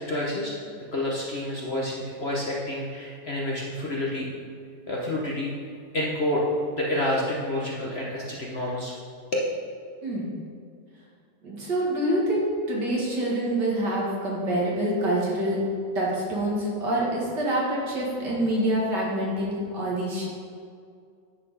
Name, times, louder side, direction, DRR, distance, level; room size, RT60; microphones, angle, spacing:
voice 1, 0.1-0.6 0.9-4.3 4.9-5.5 5.9-6.4 6.7-8.9 9.3-9.5, left 1 dB, 45° left, -4 dB, 1.0 m, -28 dB
voice 2, 11.4-15.6 16.0-20.3, right 1 dB, 70° right, -4 dB, 2.4 m, -26 dB
9.6 x 4.3 x 5.5 m, 2.3 s
omnidirectional pair, 1.9 m